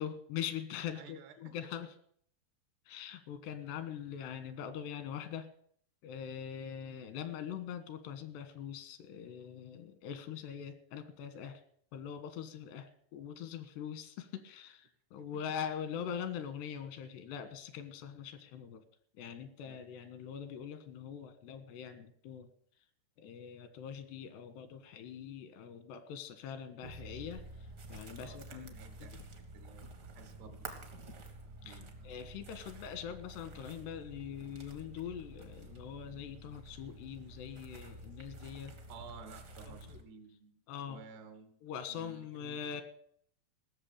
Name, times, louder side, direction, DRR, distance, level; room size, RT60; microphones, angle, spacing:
voice 1, 0.0-1.9 2.9-5.5 6.0-11.6 11.9-18.8 19.2-22.5 23.2-28.8 29.0-29.1 31.6-31.8 32.1-38.8 39.6-40.0 40.7-41.0 41.6-42.8, left 8 dB, 90° left, 11 dB, 3.6 m, -43 dB
voice 2, 0.9-1.6 19.7-19.8 28.2-30.7 31.6-31.9 38.9-40.6 40.9-41.5 41.9-42.8, right 5 dB, 80° right, 9 dB, 3.5 m, -54 dB
sound 1, 26.8-40.0, right 2 dB, 60° right, 1.0 m, -50 dB
17.5 x 6.9 x 8.6 m, 0.63 s
omnidirectional pair, 4.7 m